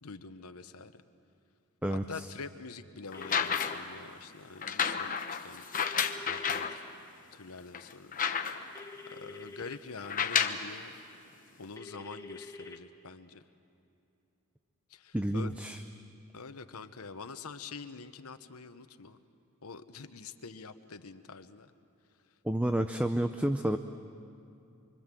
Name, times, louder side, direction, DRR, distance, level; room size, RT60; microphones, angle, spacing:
voice 1, 0.0-1.0 1.9-5.6 6.3-6.8 7.3-8.2 9.1-10.9 11.6-13.4 14.9-15.5 16.3-19.2 19.6-21.7, left 4 dB, 85° left, 9 dB, 1.1 m, -45 dB
voice 2, 1.8-2.3 15.1-15.8 22.4-23.8, right 1 dB, 5° right, 8 dB, 0.5 m, -30 dB
sound 1, 3.1-3.9 4.6-6.8 7.3-7.4 7.7-8.8 10.0-10.7 11.6-11.7, left 7 dB, 40° left, 1.0 m, -31 dB
sound 2, 3.1-3.8 5.7-6.8 8.7-9.8 11.8-12.8, left 3 dB, 15° left, 1.3 m, -47 dB
26.0 x 24.5 x 7.6 m, 2.6 s
head